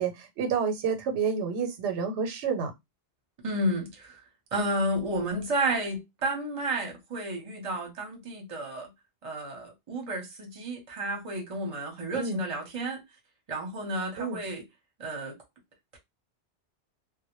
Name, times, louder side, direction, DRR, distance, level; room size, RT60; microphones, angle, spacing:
voice 1, 0.0-2.7 12.1-12.4 14.2-14.4, right 6 dB, 90° right, 0.9 m, -29 dB
voice 2, 3.4-4.2 4.5-8.9 9.2-13.0 13.5-14.6 15.0-15.4, right 1 dB, 35° right, 0.8 m, -31 dB
2.1 x 2.1 x 2.9 m
omnidirectional pair, 1.2 m